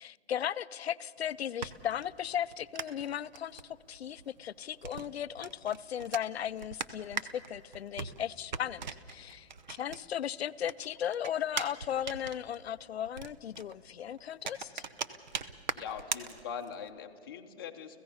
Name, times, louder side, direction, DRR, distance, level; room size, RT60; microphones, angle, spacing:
voice 1, 0.0-14.8, left 10 dB, 70° left, 16 dB, 0.6 m, -36 dB
sound 1, 1.2-10.3 10.6-16.9, right 6 dB, 45° right, 0.8 m, -41 dB
voice 2, 15.7-18.0, left 7 dB, 20° left, 3 dB, 0.8 m, -42 dB
30.0 x 16.0 x 5.6 m, 2.4 s
hypercardioid pair, 175°, 33 cm